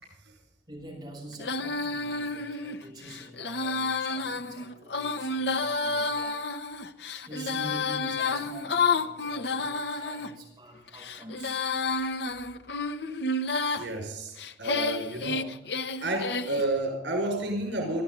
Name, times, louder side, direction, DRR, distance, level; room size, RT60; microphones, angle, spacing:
voice 1, 0.7-6.4 7.2-11.7 12.0-12.1, right 1 dB, 20° right, -2 dB, 7.0 m, -45 dB
Female singing, 1.4-10.3 10.9-13.9 14.4-16.7, left 3 dB, 65° left, 1.1 m, -30 dB
voice 2, 13.6-15.5 16.0-18.0, right 1 dB, 90° right, 2 dB, 5.5 m, -31 dB
25.5 x 13.0 x 3.9 m, 0.92 s
head